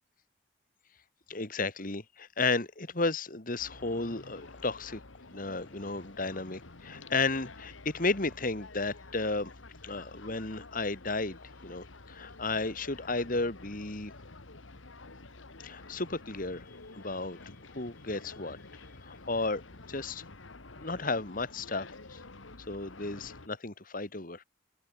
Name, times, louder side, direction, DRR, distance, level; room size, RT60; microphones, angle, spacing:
voice 1, 1.3-5.0 5.3-9.5 9.8-14.1 15.6-16.7 16.9-17.4 17.7-18.6 19.0-19.6 19.9-20.2 20.8-22.2 22.7-24.4, left 3 dB, 45° left, 2.2 m, -33 dB
sound 1, 3.6-23.5, left 3 dB, 90° left, 2.0 m, -50 dB
head